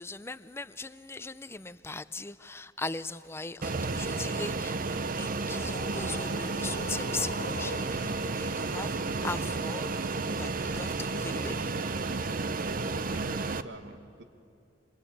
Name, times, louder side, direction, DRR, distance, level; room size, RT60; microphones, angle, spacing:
voice 1, 0.0-8.1 8.4-9.0 9.2-11.7, left 3 dB, 15° left, 0.5 m, -39 dB
Fixed-wing aircraft airplane, 3.6-13.6, right 3 dB, 50° right, 0.7 m, -32 dB
sound 1, 5.5-8.1, left 2 dB, 45° left, 1.5 m, -42 dB
voice 2, 7.9-8.7 11.7-14.2, right 2 dB, 80° right, 1.8 m, -48 dB
26.5 x 24.5 x 8.5 m
head